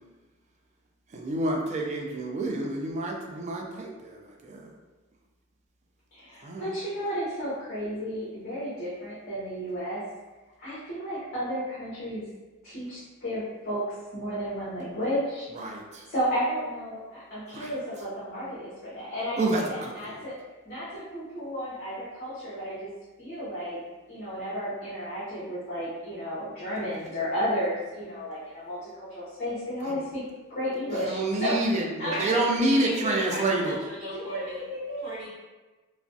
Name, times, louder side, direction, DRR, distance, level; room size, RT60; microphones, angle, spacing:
voice 1, 1.1-4.1 4.4-4.7 6.4-6.7 15.6-16.0 17.5-17.7 19.4-19.9 31.0-33.8, right 2 dB, 35° right, 1 dB, 0.3 m, -28 dB
voice 2, 6.1-10.0 10.6-12.3 12.6-13.8 14.1-15.5 16.1-20.4 20.6-22.9 23.2-23.8 24.1-30.2 30.5-31.6 32.0-32.4 32.8-33.3 34.1-35.0, equal, 45° left, -10 dB, 0.7 m, -33 dB
voice 3, 32.1-34.6 35.0-35.3, equal, 85° right, -11 dB, 0.8 m, -36 dB
2.4 x 2.1 x 2.5 m, 1.2 s
head